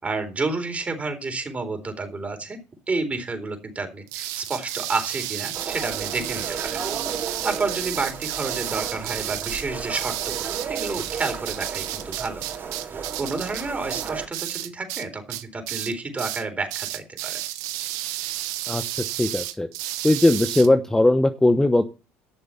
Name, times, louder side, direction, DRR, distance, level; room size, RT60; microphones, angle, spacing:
voice 1, 0.0-2.6 2.9-6.8 7.1-7.2 7.4-12.4 13.2-17.4, right 3 dB, 25° right, 5 dB, 4.0 m, -30 dB
sound 1, 4.1-15.0 15.3-16.4 16.7-20.7, right 14 dB, 75° right, 1.1 m, -32 dB
sound 2, 5.5-14.3, right 6 dB, 40° right, 4.0 m, -34 dB
voice 2, 19.2-19.7 20.0-21.8, left 2 dB, 10° left, 8 dB, 0.9 m, -19 dB
12.5 x 6.9 x 5.6 m, 0.33 s
supercardioid pair, 80°, 6 cm